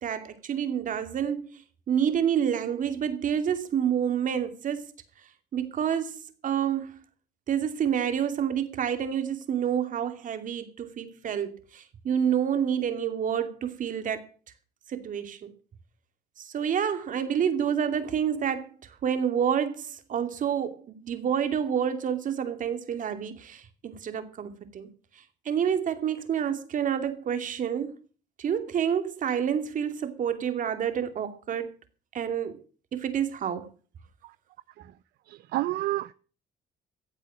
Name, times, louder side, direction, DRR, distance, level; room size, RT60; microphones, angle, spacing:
voice 1, 0.0-1.6 1.9-4.8 5.5-7.0 7.5-14.3 14.9-15.5 16.4-24.9 25.4-28.0 28.4-31.7 32.1-32.6 32.9-33.7, right 8 dB, 50° right, 2.6 m, -28 dB
voice 2, 35.3-36.1, right 15 dB, 70° right, 0.6 m, -29 dB
15.0 x 8.3 x 7.4 m
cardioid pair, 110°, 17 cm